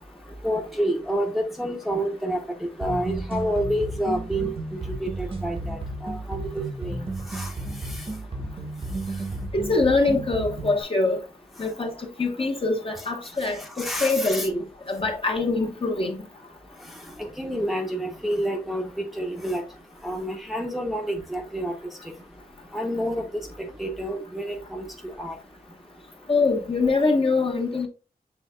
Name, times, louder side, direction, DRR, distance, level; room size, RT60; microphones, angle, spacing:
voice 1, 0.4-7.5 7.9-8.0 13.6-14.5 17.2-19.6 20.0-21.7 22.7-25.4, equal, ahead, 0.8 m, -29 dB
sound 1, 2.8-10.8, right 2 dB, 35° right, 0.9 m, -33 dB
voice 2, 9.5-11.2 11.6-11.9 12.2-16.2 26.3-27.9, left 3 dB, 35° left, 1.0 m, -24 dB
6.2 x 3.4 x 2.2 m
wide cardioid pair, 85°, 16 cm